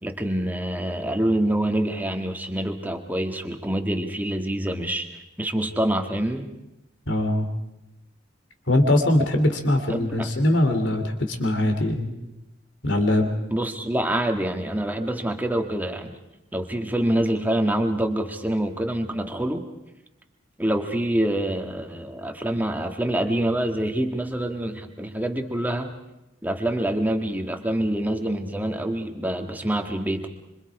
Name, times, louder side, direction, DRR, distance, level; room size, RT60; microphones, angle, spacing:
voice 1, 0.0-5.1 5.4-6.5 9.9-10.3 13.5-16.2 16.5-19.6 20.6-25.9 26.4-30.3, right 1 dB, 10° right, 4 dB, 1.7 m, -26 dB
voice 2, 7.1-7.5 8.7-12.1 12.8-13.3, left 1 dB, 65° left, 6 dB, 3.2 m, -21 dB
26.0 x 25.5 x 4.9 m, 0.93 s
head